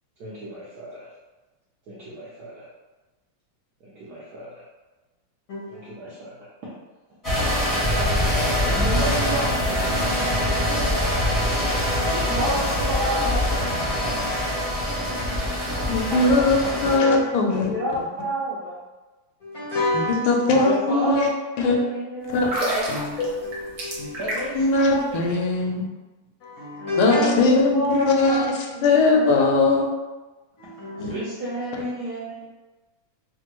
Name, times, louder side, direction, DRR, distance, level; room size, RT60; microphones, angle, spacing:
voice 1, 0.2-1.1 1.9-2.7 3.8-4.6 5.7-6.7 8.6-10.4 12.1-14.3 15.5-16.8 17.5-18.8 20.5-23.0 24.1-25.4 27.1-29.3 31.0-32.5, equal, 75° right, -7 dB, 0.9 m, -31 dB
voice 2, 5.5-5.8 7.4-7.7 12.0-12.1 14.6-15.3 16.7-17.3 19.4-20.5 22.9-24.2 26.4-27.3 30.6-31.1, left 2 dB, 65° left, -8 dB, 0.9 m, -29 dB
sound 1, 7.2-17.0, left 1 dB, 15° left, 0.7 m, -23 dB
voice 3, 15.9-16.6 16.8-17.7 19.9-21.3 21.6-21.8 22.3-22.5 24.5-25.9 27.0-28.5 28.8-29.9 31.0-31.1, left 3 dB, 85° left, 1 dB, 1.4 m, -20 dB
sound 2, 22.4-24.7 25.0-25.2, right 1 dB, 60° right, 1.2 m, -28 dB
3.4 x 2.1 x 2.9 m, 1.2 s
omnidirectional pair, 2.3 m